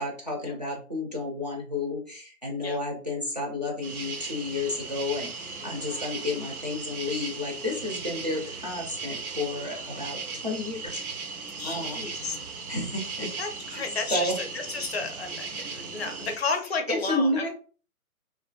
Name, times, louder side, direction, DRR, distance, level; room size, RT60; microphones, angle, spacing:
voice 1, 0.0-11.0 11.6-12.1 12.7-13.3 13.7-13.8 14.1-14.4 16.9-17.5, left 2 dB, 30° right, -1 dB, 0.4 m, -31 dB
sound 1, 3.8-16.4, right 4 dB, 80° right, 0.6 m, -37 dB
voice 2, 5.6-6.0 9.9-10.0 11.6-12.4 13.4-17.5, left 4 dB, 45° left, 5 dB, 0.5 m, -33 dB
2.4 x 2.4 x 2.3 m, 0.39 s
figure-of-eight pair, 135°, 44 cm